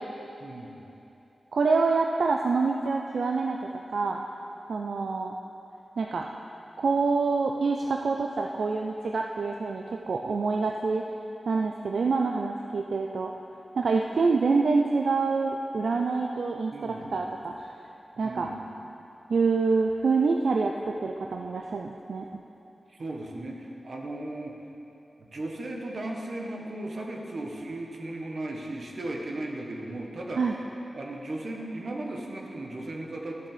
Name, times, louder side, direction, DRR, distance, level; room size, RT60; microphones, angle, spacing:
voice 1, 0.4-0.8 16.7-17.2 18.2-18.6 22.9-24.5 25.2-30.4 30.9-33.5, right 1 dB, 60° right, 0 dB, 1.3 m, -36 dB
voice 2, 1.5-3.6 3.9-4.2 4.7-5.3 6.0-6.3 6.8-11.0 11.5-13.3 13.7-17.8 18.2-18.5 19.3-22.4 30.4-30.5, right 4 dB, 80° right, 2 dB, 0.5 m, -26 dB
13.5 x 7.0 x 5.0 m, 2.9 s
wide cardioid pair, 110°, 0 cm